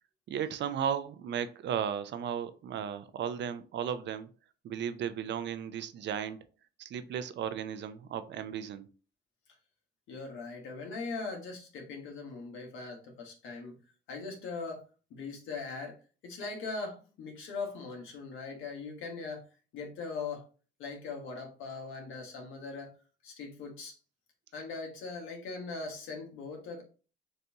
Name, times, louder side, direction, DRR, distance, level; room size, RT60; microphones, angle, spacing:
voice 1, 0.3-4.3 4.6-6.4 6.8-8.9, right 8 dB, 65° right, 0.5 m, -35 dB
voice 2, 10.1-13.7 14.1-14.8 15.1-16.0 16.2-19.4 19.7-20.5 20.8-22.9 23.2-24.0 24.5-26.8, left 4 dB, 85° left, 1.3 m, -40 dB
4.1 x 2.7 x 3.4 m
cardioid pair, 90°, 20 cm